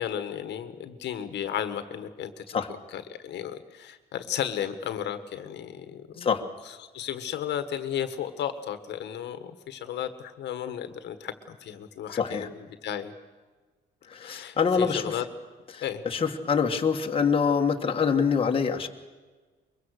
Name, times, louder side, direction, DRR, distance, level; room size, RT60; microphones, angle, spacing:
voice 1, 0.0-2.4 2.9-6.3 6.9-13.1 14.2-15.2 15.8-16.0, left 10 dB, 75° left, 10 dB, 1.5 m, -34 dB
voice 2, 12.1-12.5 14.1-15.2 15.7-18.9, left 6 dB, 30° left, 3 dB, 1.6 m, -25 dB
23.0 x 23.0 x 6.6 m, 1.3 s
cardioid pair, 145°, 18 cm